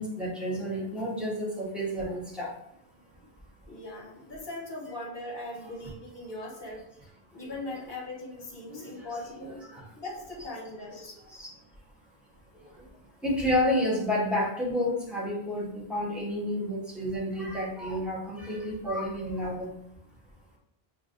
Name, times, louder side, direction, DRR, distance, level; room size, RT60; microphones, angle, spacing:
voice 1, 0.0-2.5 8.7-8.8 9.1-9.2 9.7-9.8 11.4-11.5 13.2-19.7, left 1 dB, ahead, -5 dB, 1.0 m, -30 dB
voice 2, 3.7-6.8 7.3-9.6 10.0-11.1, left 2 dB, 55° left, -3 dB, 1.1 m, -40 dB
5.7 x 2.5 x 2.6 m, 0.74 s
omnidirectional pair, 1.0 m